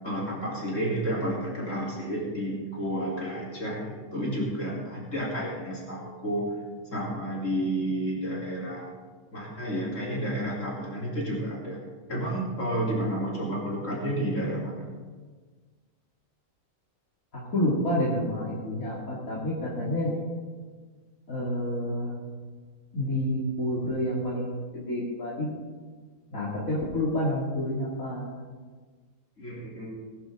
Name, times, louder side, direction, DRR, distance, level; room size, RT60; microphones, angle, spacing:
voice 1, 0.0-6.5 6.9-8.9 9.3-11.8 12.1-14.8 29.4-30.0, right 1 dB, 65° left, -5 dB, 4.1 m, -31 dB
voice 2, 17.3-20.2 21.3-22.1 22.9-25.5 26.3-28.2, left 1 dB, 85° left, -7 dB, 3.1 m, -29 dB
19.5 x 11.0 x 3.8 m, 1.5 s
omnidirectional pair, 1.4 m